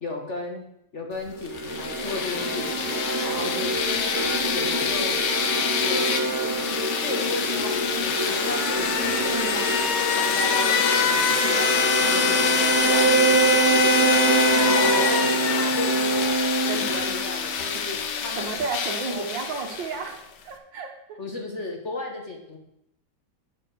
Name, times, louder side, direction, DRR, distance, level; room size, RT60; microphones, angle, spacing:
voice 1, 0.0-0.6 0.9-2.9 3.2-3.7 4.5-5.2 5.8-6.0 7.0-9.7 10.1-14.2 14.6-16.2 16.6-18.6 19.1-19.3 21.2-22.6, left 2 dB, 40° left, 1 dB, 1.4 m, -34 dB
sound 1, 1.4-17.7, right 3 dB, 20° right, 0.4 m, -26 dB
sound 2, 1.5-20.1, left 6 dB, 65° left, 1.5 m, -25 dB
voice 2, 9.2-10.1 14.5-15.1 16.7-18.0 18.4-21.2, right 4 dB, 70° right, 4 dB, 2.0 m, -34 dB
7.9 x 6.6 x 6.4 m, 0.78 s
omnidirectional pair, 2.1 m